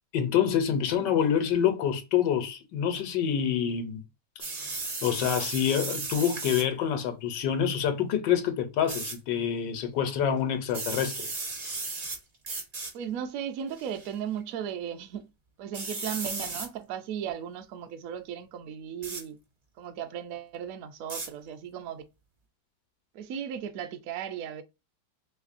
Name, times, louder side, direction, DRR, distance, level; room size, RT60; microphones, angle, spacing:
voice 1, 0.1-4.0 5.0-11.3, left 8 dB, 85° left, 1.3 m, -27 dB
sound 1, 4.4-6.7 8.9-9.1 10.7-12.2 12.4-12.9 13.7-14.1 15.7-16.7 19.0-19.2 21.1-21.3, right 3 dB, 45° right, 0.5 m, -35 dB
voice 2, 12.9-15.3 15.6-19.4 19.8-22.0 23.1-24.6, right 9 dB, 70° right, 0.8 m, -36 dB
3.5 x 3.2 x 2.5 m
omnidirectional pair, 1.9 m